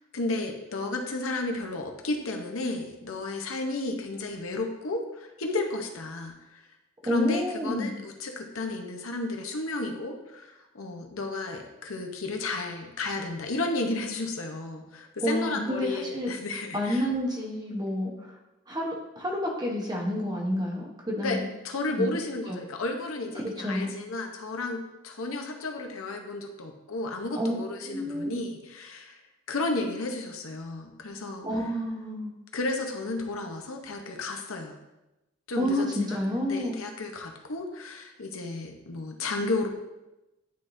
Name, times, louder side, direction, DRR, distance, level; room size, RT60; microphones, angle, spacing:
voice 1, 0.0-6.6 7.0-17.0 21.2-21.4 21.6-29.2 29.5-31.4 32.5-34.8 35.5-36.2 36.5-39.7, left 2 dB, 80° left, 3 dB, 0.8 m, -33 dB
voice 2, 7.0-7.9 15.2-16.3 16.7-18.4 18.7-21.5 22.0-22.1 22.5-22.6 23.4-23.9 27.3-27.6 27.8-28.4 31.4-32.3 35.6-36.8, equal, 20° right, -1 dB, 1.0 m, -29 dB
10.5 x 3.6 x 2.7 m, 0.98 s
head